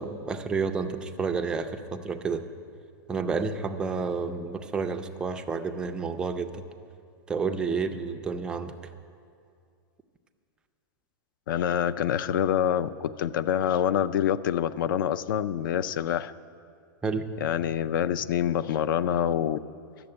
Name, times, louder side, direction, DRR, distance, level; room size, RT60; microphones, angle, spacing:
voice 1, 0.0-2.4 3.1-6.6 7.3-8.7 17.0-17.2, right 4 dB, 5° right, 6 dB, 0.3 m, -30 dB
voice 2, 11.5-16.3 17.4-19.6, left 9 dB, 65° left, 16 dB, 0.4 m, -26 dB
11.5 x 7.0 x 8.5 m, 2.3 s
supercardioid pair, 170°, 12 cm